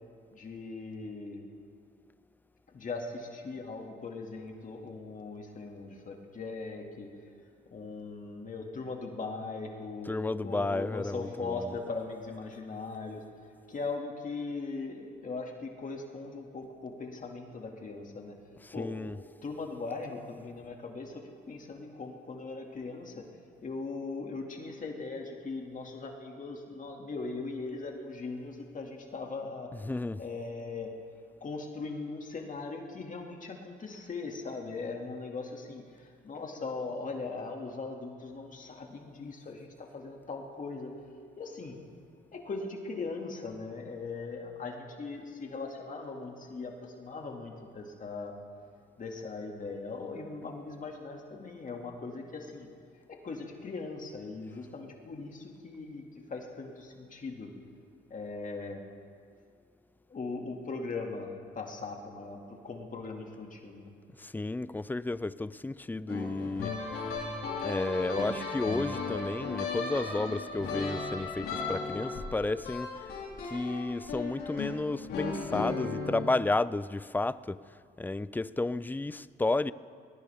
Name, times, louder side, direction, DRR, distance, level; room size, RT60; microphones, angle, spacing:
voice 1, 0.3-1.4 2.7-7.1 7.7-10.1 10.4-13.2 13.7-18.4 18.7-18.9 19.4-23.2 23.6-29.7 30.2-30.9 31.4-40.9 41.4-41.8 42.3-48.3 49.0-52.7 53.1-56.0 56.3-57.5 58.1-58.8 60.1-61.3 61.5-63.9, left 3 dB, 40° left, 2.3 m, -39 dB
voice 2, 10.0-11.8 18.6-19.2 29.7-30.3 64.2-66.8 67.6-73.0 73.4-77.6 78.0-79.7, left 2 dB, 10° left, 0.4 m, -32 dB
sound 1, 66.1-76.3, left 4 dB, 85° left, 4.6 m, -36 dB
20.5 x 19.0 x 3.6 m
cardioid pair, 90°, 20 cm